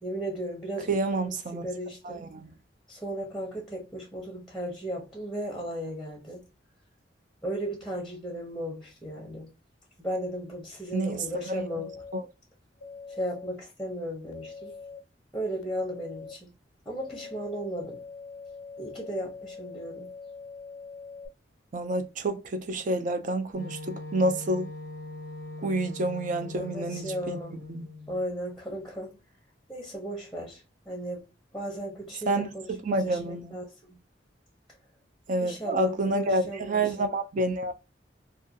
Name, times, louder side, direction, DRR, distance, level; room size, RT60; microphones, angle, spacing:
voice 1, 0.0-1.2 1.5-2.3 2.9-6.5 7.4-9.5 10.0-11.9 13.1-14.7 15.3-16.5 16.9-18.0 18.8-20.1 26.5-27.5 28.1-29.2 29.7-31.3 31.5-34.0 35.4-37.1, equal, ahead, 0.7 m, -35 dB
voice 2, 0.9-1.7 2.0-2.5 10.9-11.6 12.1-12.2 21.7-24.7 25.6-27.4 27.7-27.9 32.3-33.5 35.3-37.7, right 2 dB, 45° right, 0.4 m, -29 dB
sound 1, 11.4-12.2 12.8-13.5 14.3-15.0 15.6-16.3 17.0-21.3, left 4 dB, 80° left, 0.4 m, -43 dB
Wind instrument woodwind instrument, 23.5-28.2, left 2 dB, 80° right, 1.5 m, -41 dB
2.4 x 2.2 x 2.7 m
head